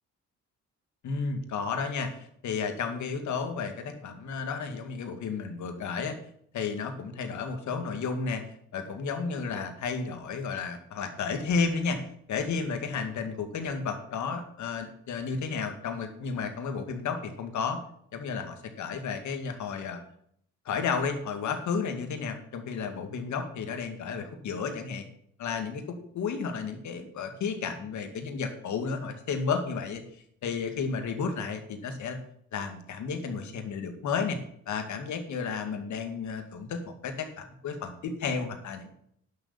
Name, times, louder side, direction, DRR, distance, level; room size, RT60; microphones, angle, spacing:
voice 1, 1.0-6.2 6.5-8.4 8.7-12.0 12.3-17.8 18.1-20.0 20.7-25.1 25.4-30.0 30.4-32.2 32.5-34.4 34.7-38.9, left 5 dB, 70° left, 6 dB, 2.2 m, -32 dB
11.0 x 6.6 x 7.2 m, 0.69 s
cardioid pair, 90°, 30 cm